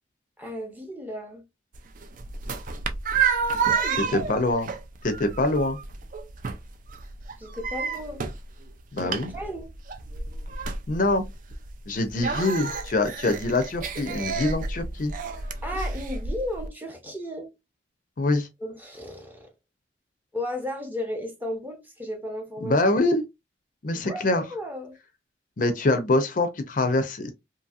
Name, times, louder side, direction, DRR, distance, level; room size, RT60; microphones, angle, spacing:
voice 1, 0.4-1.4 3.5-4.3 7.4-8.3 9.0-9.7 12.4-12.5 15.6-17.5 18.6-19.5 20.3-22.8 23.9-24.2 24.5-25.0, left 1 dB, 10° right, 0.7 m, -35 dB
sound 1, 1.7-16.7, right 5 dB, 45° right, 0.4 m, -30 dB
voice 2, 4.1-4.7 5.0-5.8 8.9-9.3 10.9-11.2 11.9-15.1 18.2-18.5 22.6-23.2 23.8-24.4 25.6-27.3, left 2 dB, 45° left, 0.5 m, -24 dB
2.8 x 2.7 x 2.3 m
head